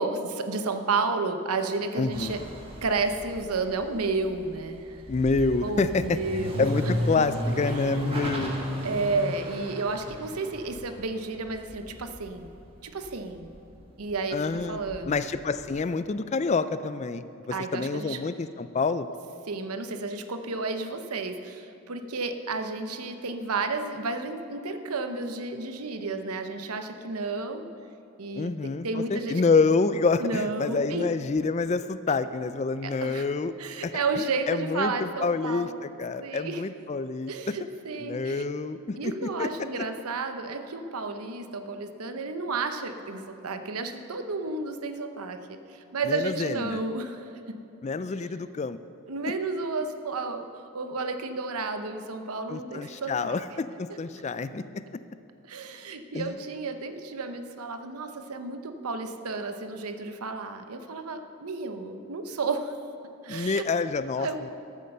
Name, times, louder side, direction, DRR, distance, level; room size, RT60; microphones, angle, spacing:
voice 1, 0.0-2.4 2.8-5.0 5.6-6.7 8.8-12.5 12.8-13.5 14.0-15.2 17.5-18.2 19.5-27.7 28.2-29.4 30.2-31.1 32.1-32.2 32.8-33.2 33.6-35.8 36.2-36.6 37.3-38.5 39.0-47.6 49.1-50.5 50.7-53.3 55.5-62.7 63.2-63.6 64.2-64.5, right 3 dB, 90° right, 8 dB, 0.9 m, -32 dB
voice 2, 2.0-2.4 5.1-6.2 6.6-8.6 14.3-14.8 15.1-19.1 28.4-33.5 33.8-33.9 34.5-37.6 38.0-39.9 46.0-46.8 47.8-48.8 52.5-54.6 56.1-56.3 63.3-64.5, left 4 dB, 30° left, 13 dB, 0.3 m, -27 dB
sound 1, 2.1-13.1 13.4-15.8, equal, 25° right, 1.4 m, -35 dB
13.5 x 8.5 x 6.6 m, 2.7 s
head